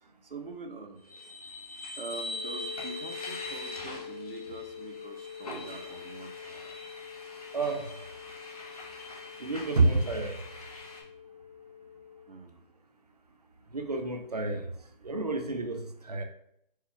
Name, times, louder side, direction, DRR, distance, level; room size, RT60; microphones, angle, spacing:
voice 1, 0.2-1.0 1.4-1.5 2.0-6.7 12.3-12.6, right 3 dB, 70° right, 6 dB, 0.7 m, -44 dB
sound 1, 1.0-11.0, left 2 dB, 40° left, 0.7 m, -43 dB
sound 2, 2.3-12.2, left 8 dB, 65° left, 1.1 m, -45 dB
voice 2, 7.5-7.8 9.4-10.4 13.7-14.7 15.0-16.2, right 3 dB, 45° right, 6 dB, 0.5 m, -29 dB
4.4 x 2.3 x 3.4 m, 0.74 s
figure-of-eight pair, 165°, 29 cm